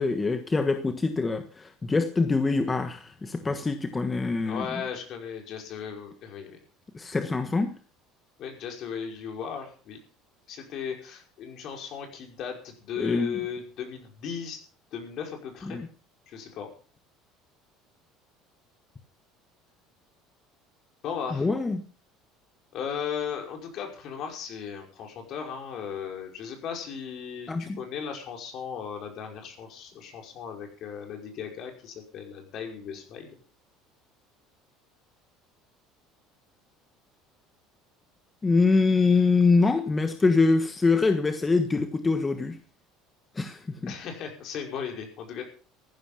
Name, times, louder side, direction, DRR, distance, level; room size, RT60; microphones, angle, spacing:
voice 1, 0.0-4.8 6.9-7.7 13.0-13.4 15.7-15.9 21.3-21.8 27.5-27.8 38.4-42.6 43.3-43.9, left 3 dB, 20° left, 1.3 m, -24 dB
voice 2, 4.4-6.6 8.4-10.0 10.5-14.6 14.9-15.8 16.3-16.7 21.0-21.5 22.7-33.4 43.9-45.4, left 7 dB, 55° left, 5.5 m, -36 dB
15.0 x 11.5 x 5.8 m
supercardioid pair, 105°, 0 cm